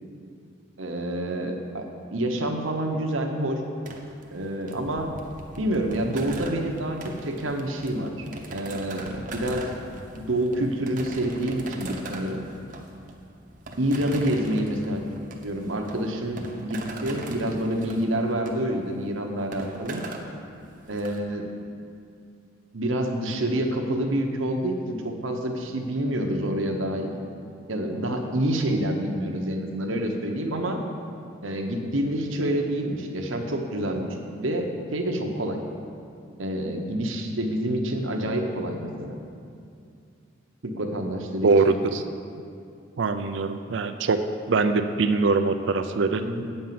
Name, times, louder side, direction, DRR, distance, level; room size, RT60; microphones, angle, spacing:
voice 1, 0.8-3.6 4.3-5.1 5.6-9.7 10.2-12.4 13.8-15.0 15.4-20.0 20.9-21.5 22.7-27.1 27.7-30.8 31.4-35.6 36.4-39.2 40.6-41.7 46.2-46.5, right 1 dB, 80° right, 3 dB, 1.0 m, -28 dB
sound 1, 3.8-21.2, right 2 dB, 40° right, 0.8 m, -40 dB
voice 2, 41.4-42.0 43.0-44.2 44.5-46.2, right 4 dB, 65° right, 8 dB, 0.4 m, -22 dB
8.7 x 5.5 x 7.5 m, 2.4 s
head